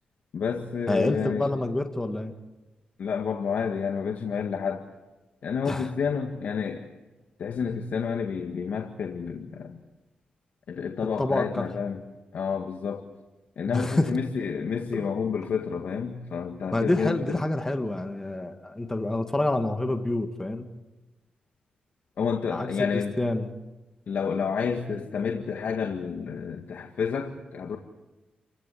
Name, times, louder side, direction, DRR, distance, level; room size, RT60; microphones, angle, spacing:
voice 1, 0.3-1.5 3.0-4.8 5.4-6.9 7.4-9.8 10.7-12.0 12.3-13.1 13.6-17.4 22.2-23.1 24.1-27.8, left 6 dB, 70° left, 4 dB, 1.8 m, -29 dB
voice 2, 0.9-2.3 5.7-5.9 11.2-11.6 13.7-14.1 14.9-15.1 16.7-20.7 22.5-22.7 22.9-23.5, left 2 dB, 15° left, 5 dB, 1.9 m, -27 dB
29.5 x 16.0 x 8.5 m, 1.1 s
cardioid pair, 85°, 3 cm